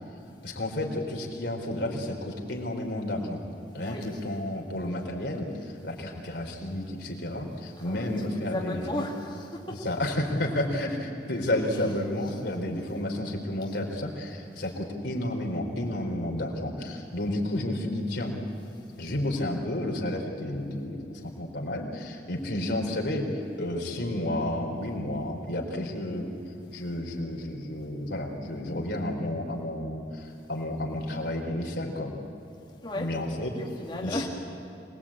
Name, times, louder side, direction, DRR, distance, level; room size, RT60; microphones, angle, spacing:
voice 1, 0.4-3.4 3.7-9.1 9.7-18.3 19.0-23.3 23.6-26.3 26.7-32.2 32.9-33.5 34.0-34.3, left 1 dB, 70° left, 1 dB, 3.9 m, -31 dB
voice 2, 3.9-4.2 7.8-9.8 11.7-11.9 12.2-12.3 32.8-33.1 33.5-34.3, left 1 dB, 30° left, -2 dB, 1.9 m, -35 dB
25.5 x 20.0 x 8.7 m, 2.7 s
head